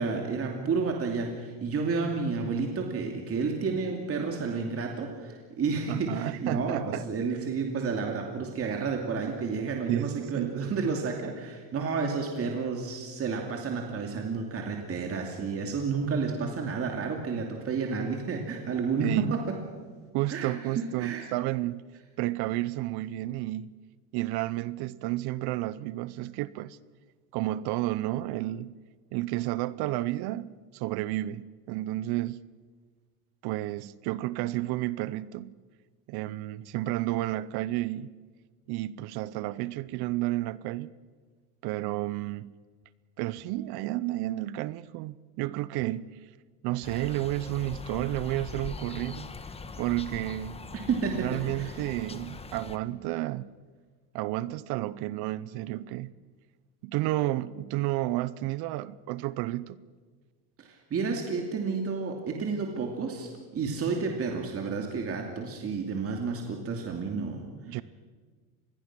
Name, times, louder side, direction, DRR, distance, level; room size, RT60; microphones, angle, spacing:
voice 1, 0.0-19.4 20.3-21.3 50.9-51.8 60.6-67.8, right 4 dB, 30° right, 2.7 m, -31 dB
voice 2, 5.9-7.1 9.9-10.6 19.0-19.4 20.1-21.9 22.2-23.7 24.1-26.8 27.3-28.7 29.1-32.4 33.4-35.5 36.1-38.1 38.7-40.9 41.6-42.6 43.2-46.2 46.6-49.3 49.8-50.6 51.2-53.5 54.1-56.1 56.8-59.8 67.7-67.8, right 16 dB, 55° right, 0.8 m, -31 dB
sound 1, 46.8-52.8, left 4 dB, 15° left, 1.2 m, -41 dB
26.0 x 21.0 x 6.1 m
supercardioid pair, 130°, 45 cm